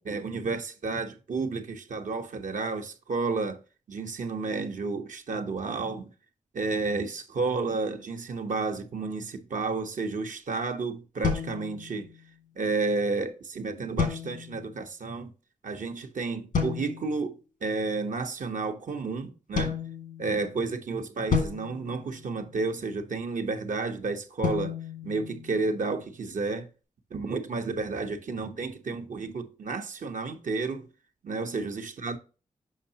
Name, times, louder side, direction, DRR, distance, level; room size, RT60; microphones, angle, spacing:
voice 1, 0.0-3.6 3.9-6.1 6.5-12.1 12.6-15.3 15.6-19.8 20.2-24.8 25.0-26.7 27.1-30.9 31.2-32.2, right 3 dB, 70° right, 0.9 m, -31 dB
sound 1, 11.2-12.3 14.0-14.8 16.5-17.2 19.6-20.6 21.3-22.8 24.4-25.9, left 5 dB, 85° left, 1.7 m, -32 dB
6.6 x 5.6 x 2.8 m
cardioid pair, 50°, 14 cm